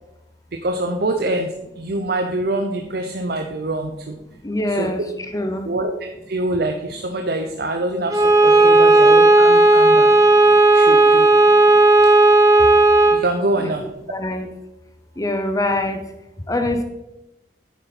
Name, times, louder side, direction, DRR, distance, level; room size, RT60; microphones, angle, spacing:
voice 1, 0.5-4.2 4.7-4.9 5.6-5.9 6.3-10.3 10.7-11.3 13.1-13.8, right 2 dB, 60° right, 4 dB, 0.7 m, -25 dB
voice 2, 4.4-5.0 5.3-5.7 13.6-13.7 14.1-14.5 15.2-16.0 16.5-16.8, left 1 dB, 20° left, 6 dB, 0.7 m, -23 dB
Bowed string instrument, 8.1-13.3, right 2 dB, 20° right, 0.9 m, -12 dB
9.3 x 7.0 x 4.2 m, 0.94 s
head